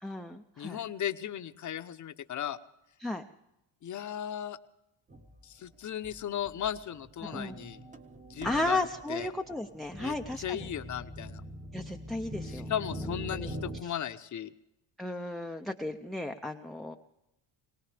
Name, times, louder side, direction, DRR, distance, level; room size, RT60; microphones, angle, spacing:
voice 1, 0.0-0.8 3.0-3.2 7.2-7.6 8.4-10.7 11.7-12.7 13.3-13.5 13.8-13.9 15.0-16.9, left 2 dB, ahead, 3 dB, 0.5 m, -34 dB
voice 2, 0.6-2.6 3.8-4.6 5.4-7.8 8.3-9.3 10.0-11.4 12.4-14.5, left 10 dB, 40° left, 10 dB, 0.8 m, -36 dB
sound 1, 5.1-5.4 6.0-6.2 6.4-13.8, equal, 15° right, 0.9 m, -43 dB
22.5 x 18.5 x 3.4 m, 0.89 s
cardioid pair, 145°, 47 cm